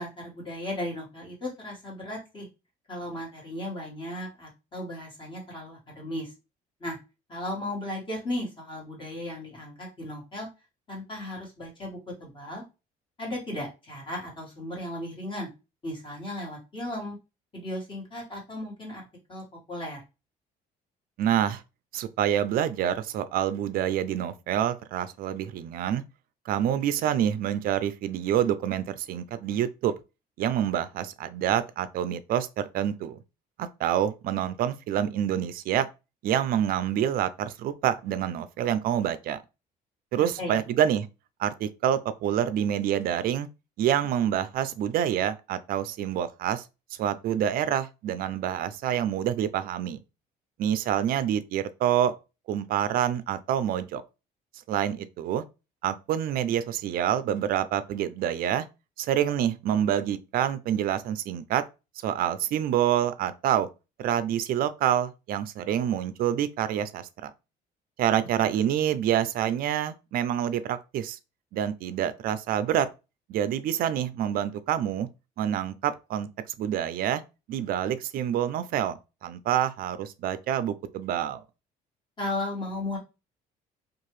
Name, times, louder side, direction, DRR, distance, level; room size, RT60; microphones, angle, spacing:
voice 1, 0.0-2.5 2.9-6.3 6.8-7.0 7.3-10.5 10.9-12.6 13.2-15.5 15.8-17.2 17.5-19.0 19.3-20.0 40.2-40.6 82.2-83.0, left 1 dB, 30° left, 1.6 m, -35 dB
voice 2, 21.2-21.6 21.9-26.0 26.5-29.9 30.4-33.2 33.6-35.9 36.2-39.4 40.1-41.1 41.4-43.5 43.8-46.6 47.0-50.0 50.6-52.1 52.5-54.0 54.7-55.4 55.8-58.6 59.0-61.6 62.0-63.7 64.0-67.3 68.0-71.2 71.5-72.9 73.3-75.1 75.4-76.3 76.6-77.2 77.5-81.4, right 10 dB, 60° right, 0.4 m, -27 dB
2.7 x 2.4 x 3.0 m
cardioid pair, 110°, 17 cm